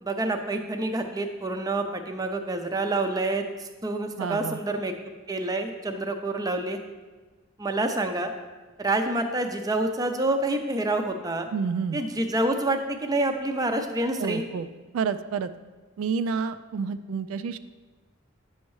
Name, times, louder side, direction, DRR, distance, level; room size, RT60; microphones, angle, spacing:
voice 1, 0.0-4.9 5.3-6.8 7.6-8.3 8.8-11.5 11.9-14.4, right 2 dB, 15° right, 5 dB, 0.5 m, -27 dB
voice 2, 4.2-4.6 11.5-12.0 14.2-14.7 14.9-15.5 16.0-17.6, right 5 dB, 75° right, 10 dB, 0.3 m, -29 dB
9.4 x 6.3 x 3.1 m, 1.3 s
head